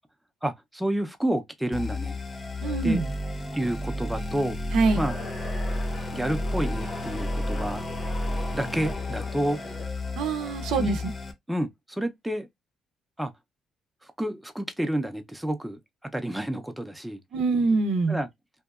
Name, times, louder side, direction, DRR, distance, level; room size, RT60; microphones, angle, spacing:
voice 1, 0.4-2.2 2.8-3.0 3.5-4.6 5.0-5.1 6.1-7.8 8.5-9.6 10.8-11.0 11.5-12.5 13.2-13.3 14.0-15.8 16.1-17.2 18.1-18.3, right 1 dB, 5° right, 0.4 m, -29 dB
sound 1, 1.7-11.3, left 1 dB, 35° left, 0.7 m, -32 dB
voice 2, 2.6-3.1 4.7-5.0 10.2-11.0 17.3-18.2, right 4 dB, 85° right, 0.5 m, -24 dB
sound 2, 4.8-9.9, left 2 dB, 80° left, 1.0 m, -41 dB
2.7 x 2.2 x 2.3 m
cardioid pair, 90°, 0 cm